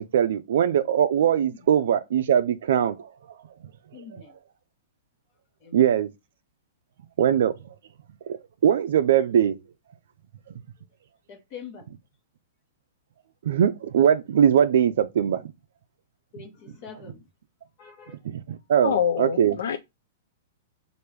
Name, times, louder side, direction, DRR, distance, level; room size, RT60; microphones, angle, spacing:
voice 1, 0.0-3.1 4.1-4.2 5.7-6.1 7.2-7.5 8.3-9.6 13.4-15.4 18.2-19.6, right 9 dB, 70° right, 0.4 m, -21 dB
voice 2, 3.9-4.4 5.6-5.8 11.3-11.9 16.3-17.3 17.8-18.2, left 7 dB, 40° left, 1.0 m, -44 dB
voice 3, 18.8-19.8, left 8 dB, 75° left, 0.4 m, -25 dB
4.5 x 2.5 x 3.3 m
hypercardioid pair, 155°, 0 cm